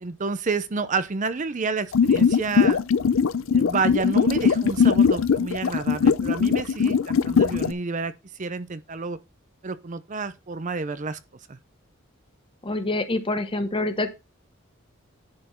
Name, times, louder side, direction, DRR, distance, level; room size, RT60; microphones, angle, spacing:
voice 1, 0.0-2.8 3.5-9.2 9.6-11.2 11.5-11.6, right 4 dB, 40° right, 0.6 m, -29 dB
sound 1, 1.9-7.7, left 6 dB, 70° left, 0.4 m, -20 dB
voice 2, 12.6-14.1, left 2 dB, 25° left, 1.1 m, -26 dB
10.5 x 4.4 x 4.3 m
head